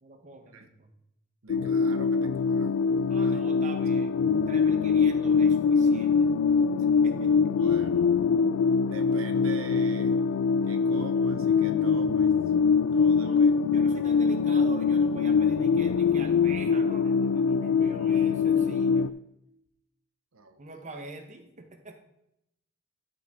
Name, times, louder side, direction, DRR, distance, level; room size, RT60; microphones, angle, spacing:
voice 1, 0.0-0.9 3.1-4.1 4.5-6.3 7.0-7.3 13.2-19.1 20.6-21.9, right 3 dB, 35° right, 5 dB, 1.0 m, -45 dB
voice 2, 1.4-3.4 7.2-8.2 8.9-10.2 10.6-12.4 12.9-13.5 20.3-20.6, right 3 dB, 80° right, 7 dB, 1.0 m, -45 dB
sound 1, 1.5-19.1, left 5 dB, 75° left, 0.3 m, -23 dB
13.0 x 5.7 x 3.6 m, 0.83 s
head